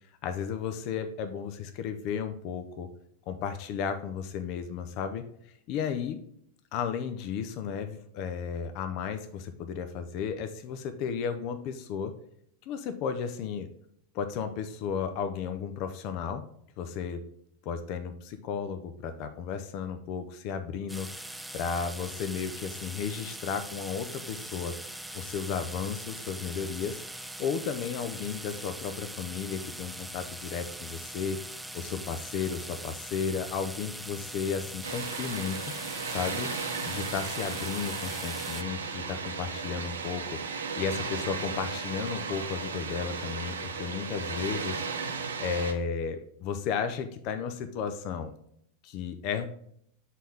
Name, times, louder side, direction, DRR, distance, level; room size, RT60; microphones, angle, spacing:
voice 1, 0.2-2.9 3.3-6.2 6.7-12.1 12.7-13.7 14.1-16.4 16.8-17.2 17.6-21.1 21.5-24.8 25.1-27.0 27.4-31.4 31.7-35.7 36.1-36.5 36.9-44.8 45.4-48.3 48.8-49.5, left 7 dB, 45° left, 9 dB, 0.6 m, -34 dB
sound 1, 20.9-38.6, right 1 dB, 5° right, 0.4 m, -41 dB
Water, 34.8-45.7, right 5 dB, 75° right, 0.8 m, -35 dB
7.4 x 4.2 x 3.5 m, 0.68 s
figure-of-eight pair, 90°, 0 cm